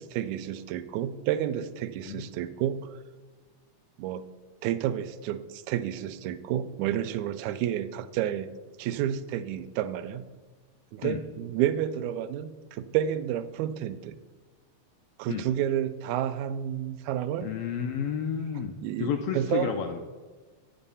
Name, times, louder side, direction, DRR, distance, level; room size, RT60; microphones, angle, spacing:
voice 1, 0.0-3.0 4.0-4.3 4.6-10.2 10.9-14.1 15.2-17.5 18.8-19.7, right 11 dB, 85° right, 12 dB, 1.9 m, -30 dB
voice 2, 17.4-20.0, left 7 dB, 75° left, 5 dB, 1.4 m, -31 dB
9.0 x 7.1 x 5.5 m, 1.3 s
omnidirectional pair, 3.3 m